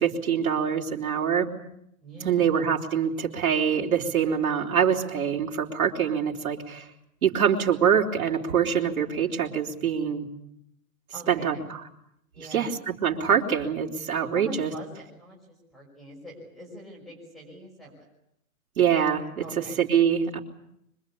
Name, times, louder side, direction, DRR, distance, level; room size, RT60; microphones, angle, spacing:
voice 1, 0.0-1.5 2.2-6.9 7.2-10.3 11.3-11.8 12.4-14.7 18.8-19.4 19.8-20.4, right 8 dB, 75° right, -1 dB, 4.2 m, -24 dB
voice 2, 2.0-2.5 11.1-11.6 12.3-12.8 14.3-18.1 19.4-19.8, equal, ahead, -4 dB, 6.0 m, -43 dB
25.0 x 22.5 x 8.7 m, 0.76 s
hypercardioid pair, 160°, 43 cm